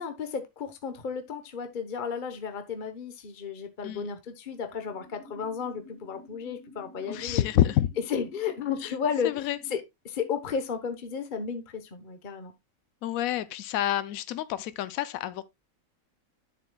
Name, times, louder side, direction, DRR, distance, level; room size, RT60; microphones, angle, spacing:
voice 1, 0.0-7.4 8.1-9.4 9.7-12.5, left 6 dB, 40° left, 1.1 m, -33 dB
sound 1, 4.7-9.7, left 2 dB, 55° right, 2.6 m, -51 dB
voice 2, 7.1-7.9 8.8-9.0 9.2-9.6 13.0-15.4, left 12 dB, 80° left, 1.0 m, -28 dB
9.6 x 7.4 x 2.2 m
omnidirectional pair, 1.4 m